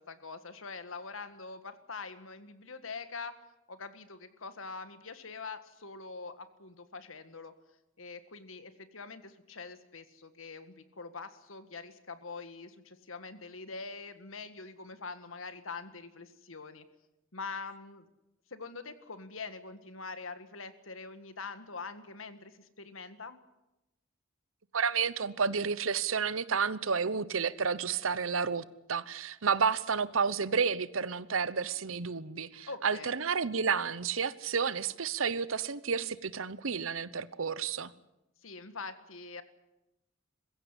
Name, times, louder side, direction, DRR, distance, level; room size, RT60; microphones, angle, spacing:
voice 1, 0.0-3.3 3.7-7.5 8.0-16.8 17.3-18.1 18.5-23.4 32.6-33.1 38.4-39.4, left 4 dB, 85° left, 1.7 m, -44 dB
voice 2, 24.7-37.9, right 6 dB, 80° right, 0.9 m, -31 dB
22.0 x 15.5 x 9.9 m
head